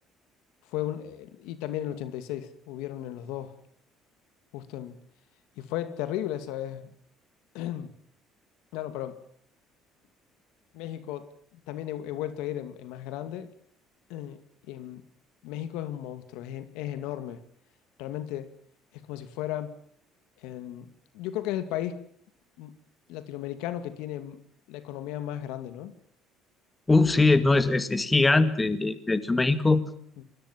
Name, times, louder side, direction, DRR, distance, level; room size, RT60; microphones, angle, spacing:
voice 1, 0.7-3.6 4.5-5.0 5.6-6.9 7.5-7.9 8.7-9.2 10.7-11.3 11.7-13.5 14.1-14.4 14.7-15.0 15.4-17.4 18.0-18.5 18.9-19.7 20.4-20.9 21.1-22.0 22.6-22.7 23.1-24.4 24.7-25.9 27.1-27.3 30.2-30.3, left 12 dB, 85° left, 2.5 m, -35 dB
voice 2, 26.9-29.8, left 3 dB, 15° left, 2.1 m, -21 dB
26.5 x 21.0 x 7.6 m
cardioid pair, 110°, 0 cm